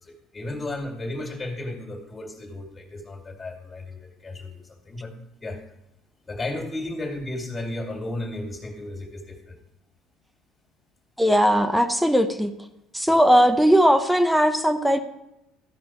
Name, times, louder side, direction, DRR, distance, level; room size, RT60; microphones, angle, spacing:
voice 1, 0.0-5.1 5.4-5.6 6.2-9.6, left 2 dB, 30° left, -1 dB, 2.4 m, -34 dB
voice 2, 11.2-12.5 12.9-15.0, equal, 5° right, 7 dB, 0.8 m, -18 dB
13.5 x 5.1 x 4.6 m, 0.86 s
hypercardioid pair, 70°, 0 cm